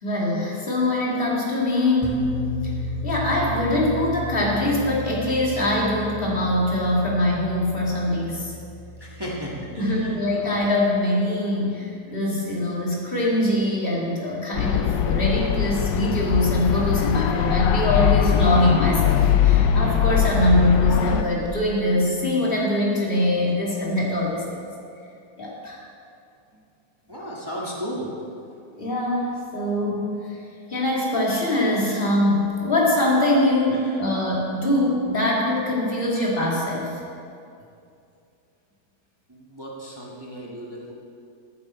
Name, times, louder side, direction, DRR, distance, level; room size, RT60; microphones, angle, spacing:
voice 1, 0.0-2.3 3.0-8.5 9.8-24.7 25.4-25.8 28.8-30.4 30.7-36.9, left 1 dB, 30° left, -4 dB, 2.5 m, -23 dB
sound 1, 2.0-10.1, left 1 dB, 10° left, 0.8 m, -34 dB
voice 2, 9.0-10.7 27.1-28.1 33.7-33.8 39.3-40.9, equal, 15° right, -4 dB, 1.5 m, -35 dB
sound 2, 14.5-21.2, left 9 dB, 80° left, 1.3 m, -21 dB
15.0 x 8.6 x 4.4 m, 2.5 s
omnidirectional pair, 1.9 m